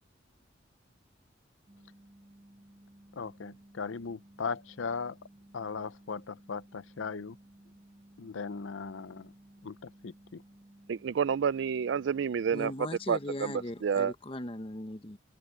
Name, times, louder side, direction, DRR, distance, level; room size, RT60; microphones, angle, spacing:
sound 1, 1.7-13.7, right 1 dB, 20° right, 2.9 m, -57 dB
voice 1, 3.1-5.2 5.5-7.4 8.2-9.3 9.6-10.4, left 5 dB, 85° left, 0.6 m, -38 dB
voice 2, 10.9-12.7 13.1-14.1, right 7 dB, 65° right, 0.4 m, -29 dB
voice 3, 12.5-15.2, left 1 dB, 30° left, 1.1 m, -39 dB
head